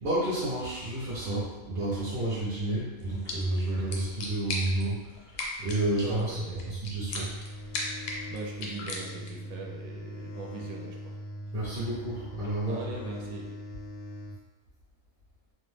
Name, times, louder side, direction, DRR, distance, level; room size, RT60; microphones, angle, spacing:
voice 1, 0.0-7.3 11.5-12.8, right 2 dB, 50° right, -9 dB, 0.6 m, -31 dB
sound 1, 3.0-9.5, left 2 dB, 90° left, 1.1 m, -39 dB
voice 2, 5.9-6.8 7.9-11.2 11.5-11.6 12.7-13.5, right 4 dB, 70° right, -1 dB, 0.9 m, -41 dB
sound 2, 6.8-14.4, left 1 dB, 70° left, 0.5 m, -41 dB
2.6 x 2.0 x 3.1 m, 1.1 s
omnidirectional pair, 1.6 m